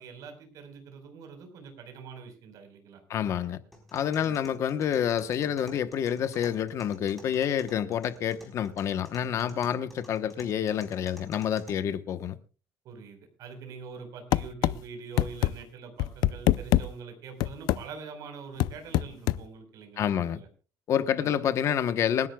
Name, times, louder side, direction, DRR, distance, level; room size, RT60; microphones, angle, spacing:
voice 1, 0.0-3.3 4.2-4.4 12.8-20.5 21.1-21.3, right 5 dB, 60° right, 4.4 m, -44 dB
voice 2, 3.1-3.6 3.9-12.3 20.0-20.4 20.9-22.3, left 9 dB, 45° left, 1.0 m, -28 dB
sound 1, 3.7-11.7, equal, ahead, 4.1 m, -52 dB
sound 2, 14.3-14.8 15.2-15.5 16.0-16.9 17.4-17.8 18.6-19.4, left 15 dB, 75° left, 0.6 m, -23 dB
28.0 x 11.0 x 2.3 m
cardioid pair, 170°, 7 cm